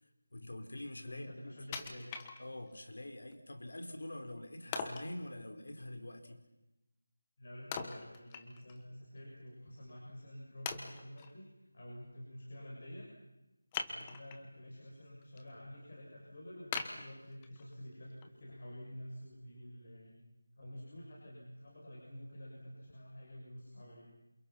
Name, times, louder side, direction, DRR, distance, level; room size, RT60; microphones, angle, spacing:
voice 1, 0.3-1.6 2.4-6.4, left 1 dB, 75° left, 6 dB, 4.5 m, -45 dB
voice 2, 1.0-2.1 7.4-13.1 13.9-20.2 20.6-24.0, equal, 40° left, -3 dB, 6.8 m, -49 dB
Wood, 1.7-2.8 3.3-3.4 4.7-5.1 7.7-8.8 9.2-9.3 9.9-10.0 10.7-11.3 13.7-14.5 15.0-15.4 15.8-15.9 16.7-17.7 18.2-18.3, left 5 dB, 10° left, 1.2 m, -41 dB
29.0 x 28.0 x 5.9 m, 0.98 s
figure-of-eight pair, 180°, 0 cm